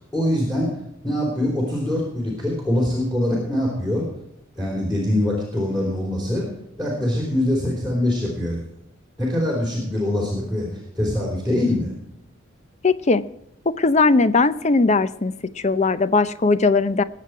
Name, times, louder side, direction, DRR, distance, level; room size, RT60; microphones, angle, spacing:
voice 1, 0.1-0.7 1.0-4.0 4.6-6.5 6.8-8.6 9.2-11.9, left 1 dB, 5° left, 3.4 m, -23 dB
voice 2, 12.8-13.2 13.8-15.3 15.6-17.0, left 3 dB, 35° left, 0.6 m, -18 dB
20.0 x 7.7 x 4.6 m
head